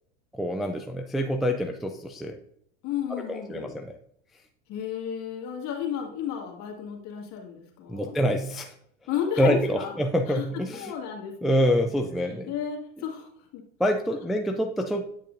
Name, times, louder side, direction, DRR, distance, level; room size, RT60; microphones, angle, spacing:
voice 1, 0.3-2.4 3.1-3.9 7.9-8.7 9.4-10.9 11.4-12.5 13.8-15.0, equal, ahead, 3 dB, 0.4 m, -26 dB
voice 2, 2.8-3.8 4.7-8.1 9.1-9.9 10.3-10.4 10.7-11.7 12.2-13.6, left 8 dB, 50° left, 1 dB, 1.9 m, -33 dB
8.7 x 5.4 x 2.6 m, 0.67 s
supercardioid pair, 105°, 36 cm